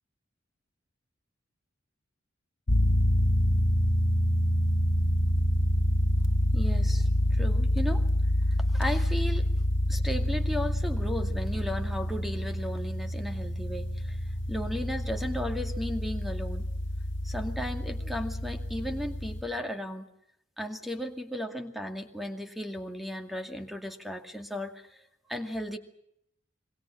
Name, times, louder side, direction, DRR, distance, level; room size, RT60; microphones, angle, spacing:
sound 1, 2.7-19.4, equal, 65° left, 1.6 m, -27 dB
voice 1, 6.5-8.1 8.5-9.5 9.9-14.2 14.5-16.7 17.2-20.1 20.6-25.8, equal, ahead, 5 dB, 2.2 m, -35 dB
26.5 x 23.0 x 6.2 m, 0.76 s
head